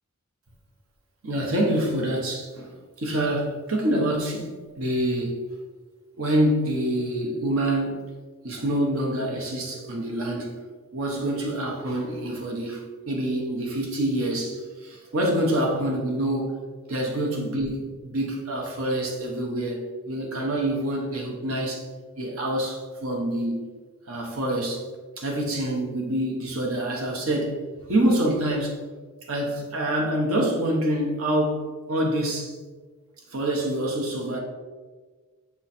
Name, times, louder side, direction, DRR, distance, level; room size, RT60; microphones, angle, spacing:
voice 1, 1.2-2.7 3.0-5.4 6.2-7.9 8.4-10.6 10.9-16.6 16.9-21.8 22.2-23.6 24.1-24.8 25.2-27.6 27.9-28.8 29.3-32.6 33.3-34.4, right 1 dB, 70° right, 0 dB, 1.1 m, -26 dB
7.1 x 3.1 x 4.2 m, 1.4 s
head